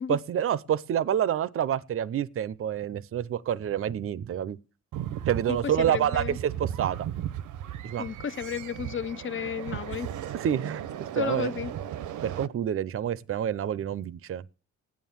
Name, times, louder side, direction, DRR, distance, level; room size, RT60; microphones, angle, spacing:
voice 1, 0.1-4.6 5.3-7.1 7.8-8.1 10.3-11.5 12.2-14.4, right 10 dB, 45° right, 0.7 m, -28 dB
sound 1, 4.9-12.5, right 11 dB, 75° right, 0.9 m, -36 dB
voice 2, 5.5-6.4 8.0-10.1 11.1-11.7, left 7 dB, 40° left, 0.8 m, -33 dB
14.0 x 9.5 x 7.3 m
cardioid pair, 90°, 30 cm